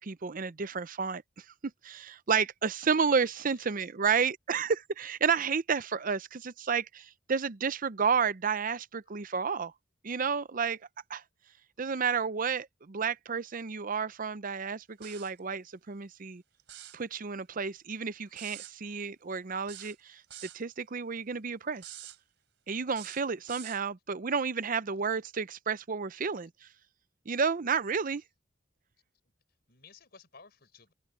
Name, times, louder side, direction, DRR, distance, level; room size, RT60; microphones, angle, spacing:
voice 1, 0.0-1.4 1.8-9.7 10.0-10.8 11.1-11.2 11.8-16.4 16.9-22.0 22.7-26.5 27.3-28.2, right 6 dB, 45° right, 0.6 m, -31 dB
voice 2, 3.1-3.6 9.1-9.2 18.3-18.4 23.7-23.8 24.2-24.3 29.7-30.9, left 4 dB, 55° left, 5.2 m, -56 dB
sound 1, 15.0-15.4 16.6-17.0 18.4-18.7 19.7-20.6 21.8-22.2 22.9-23.8, right 12 dB, 70° right, 3.6 m, -46 dB
open air
head